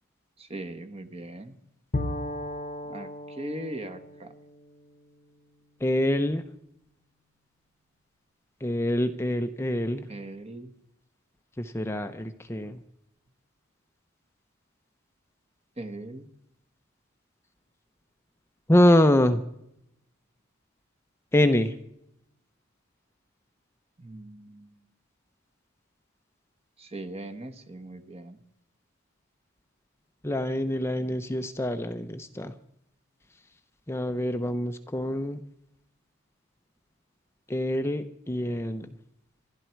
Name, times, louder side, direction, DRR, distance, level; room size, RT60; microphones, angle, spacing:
voice 1, 0.4-1.6 2.9-4.3 10.1-10.7 15.8-16.3 24.0-24.8 26.8-28.4, right 1 dB, 30° right, 7 dB, 1.4 m, -40 dB
Bowed string instrument, 1.9-5.7, left 1 dB, 35° left, 0.9 m, -36 dB
voice 2, 5.8-6.4 8.6-10.0 11.6-12.8 18.7-19.4 21.3-21.7 30.2-32.5 33.9-35.4 37.5-38.9, left 1 dB, 10° left, 7 dB, 0.6 m, -25 dB
27.0 x 11.5 x 4.6 m, 0.80 s
head